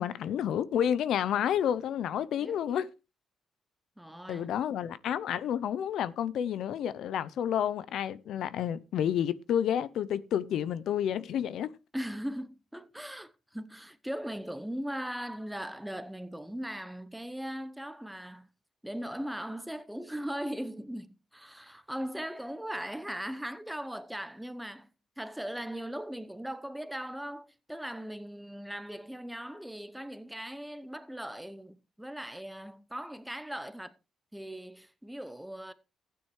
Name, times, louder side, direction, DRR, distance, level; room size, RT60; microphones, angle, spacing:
voice 1, 0.0-2.9 4.3-11.7, left 9 dB, 75° left, 0.6 m, -30 dB
voice 2, 2.4-2.8 4.0-4.6 11.9-18.5 18.8-24.9 25.2-33.9 34.3-35.7, equal, 5° right, 0.9 m, -39 dB
15.0 x 9.4 x 3.1 m
cardioid pair, 90°, 0 cm